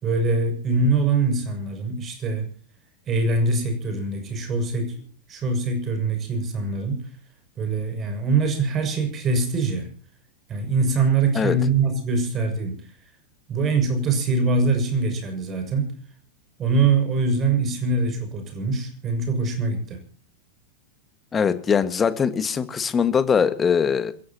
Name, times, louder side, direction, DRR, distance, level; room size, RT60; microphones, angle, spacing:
voice 1, 0.0-2.5 3.1-4.9 5.3-7.1 7.6-9.9 10.5-12.8 13.5-15.9 16.6-20.0, right 3 dB, 25° right, 6 dB, 6.8 m, -23 dB
voice 2, 21.3-24.1, left 6 dB, 20° left, 13 dB, 1.7 m, -21 dB
27.5 x 16.0 x 2.9 m, 0.42 s
figure-of-eight pair, 90°, 0 cm